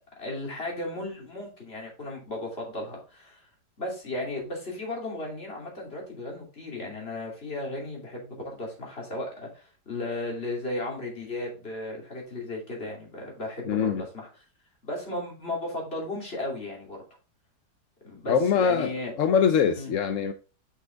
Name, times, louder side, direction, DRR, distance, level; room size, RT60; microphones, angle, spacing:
voice 1, 0.2-3.4 3.8-14.3 14.8-17.0 18.0-19.1 19.7-19.9, left 2 dB, 35° left, 3.0 m, -35 dB
voice 2, 13.6-14.0 18.3-18.9 19.2-20.3, left 7 dB, 60° left, 0.8 m, -23 dB
6.1 x 5.9 x 3.9 m
omnidirectional pair, 1.9 m